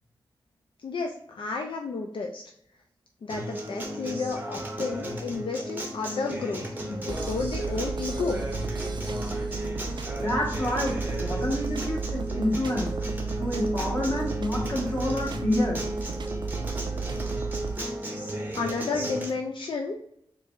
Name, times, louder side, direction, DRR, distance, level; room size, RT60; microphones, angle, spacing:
voice 1, 0.8-2.4 3.2-6.6 6.9-8.4 18.6-20.0, left 4 dB, 70° left, 1 dB, 0.4 m, -31 dB
Acoustic guitar, 3.3-19.3, right 1 dB, 20° right, 0.7 m, -34 dB
sound 1, 7.1-17.8, right 5 dB, 55° right, 0.4 m, -34 dB
voice 2, 10.2-12.9 13.3-15.8, left 1 dB, 35° left, -3 dB, 1.3 m, -28 dB
4.5 x 3.0 x 2.5 m, 0.72 s
wide cardioid pair, 105°, 9 cm